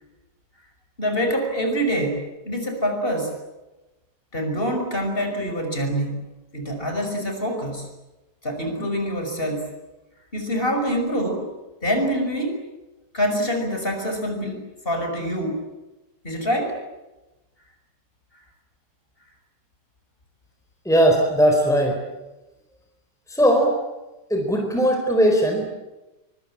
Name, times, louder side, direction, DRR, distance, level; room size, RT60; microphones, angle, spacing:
voice 1, 1.0-3.4 4.3-6.2 6.5-7.9 8.4-9.7 10.3-11.5 11.8-12.6 13.1-15.6 16.2-16.8, equal, 30° left, 4 dB, 6.0 m, -25 dB
voice 2, 20.8-22.0 23.3-23.8 24.3-25.7, equal, ahead, 2 dB, 4.2 m, -19 dB
24.5 x 24.0 x 8.8 m, 1.0 s
omnidirectional pair, 2.0 m